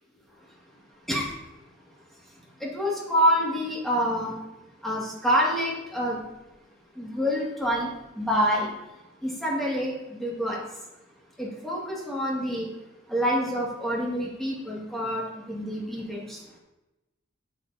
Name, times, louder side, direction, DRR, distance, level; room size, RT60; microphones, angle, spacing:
voice 1, 2.6-4.4 4.8-6.2 7.0-7.9 8.2-8.7 9.2-10.6 11.4-12.7 13.1-16.4, equal, ahead, -4 dB, 1.8 m, -27 dB
11.0 x 7.6 x 2.6 m, 1.0 s
head